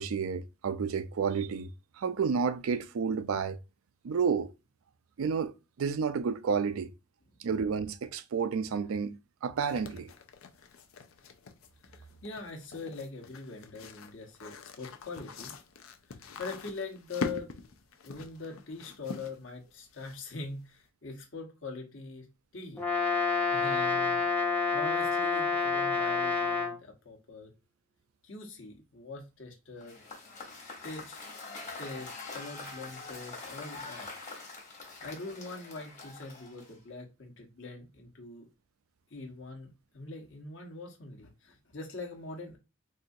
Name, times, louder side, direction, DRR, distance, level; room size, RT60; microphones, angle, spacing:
voice 1, 0.0-1.7 2.0-3.6 4.0-4.5 5.2-6.9 7.4-10.1, right 6 dB, 80° right, 0.4 m, -31 dB
sound 1, 9.7-20.5, left 4 dB, 80° left, 0.5 m, -44 dB
voice 2, 11.9-15.5 16.1-17.5 18.0-22.3 22.5-22.8 23.5-24.2 24.7-27.5 28.2-30.0 30.6-31.3 31.8-34.1 35.0-38.5 39.1-42.6, left 3 dB, 65° left, 1.0 m, -43 dB
Brass instrument, 22.8-26.8, left 4 dB, 10° left, 0.5 m, -28 dB
Cheering / Applause / Crowd, 29.8-36.9, left 3 dB, 35° left, 1.1 m, -44 dB
4.1 x 2.4 x 2.6 m
head